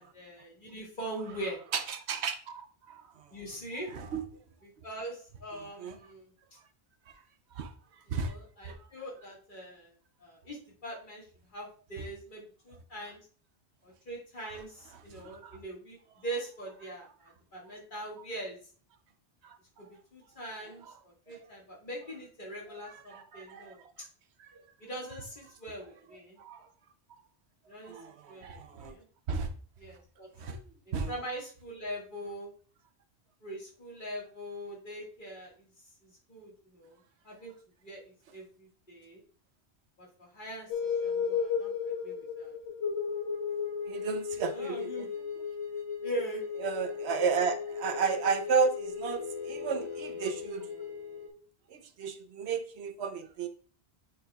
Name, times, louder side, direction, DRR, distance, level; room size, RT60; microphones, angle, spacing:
voice 1, 0.0-1.6 3.3-3.9 4.6-6.3 8.1-9.9 10.2-11.3 11.5-13.2 13.8-18.6 19.8-24.1 24.8-26.4 27.7-28.0 28.3-29.0 29.8-30.3 30.9-32.5 33.4-35.6 36.0-37.0 37.2-37.5 37.8-39.2 40.0-40.7 41.0-42.6 44.5-45.1 46.0-46.4, right 1 dB, 50° left, 2.0 m, -42 dB
voice 2, 1.7-3.1 3.9-4.2 5.8-6.0 7.6-7.7 8.1-8.3 8.6-8.8 15.2-15.6 19.4-19.6 21.3-21.4 22.9-23.7 26.4-26.7 27.9-28.9 29.3-29.5 30.4-30.6 30.9-31.1 43.9-45.1 46.6-50.7 51.7-53.5, right 5 dB, 80° right, 1.0 m, -33 dB
sound 1, 40.7-51.3, left 6 dB, 80° left, 1.5 m, -35 dB
8.8 x 4.8 x 2.3 m
omnidirectional pair, 1.1 m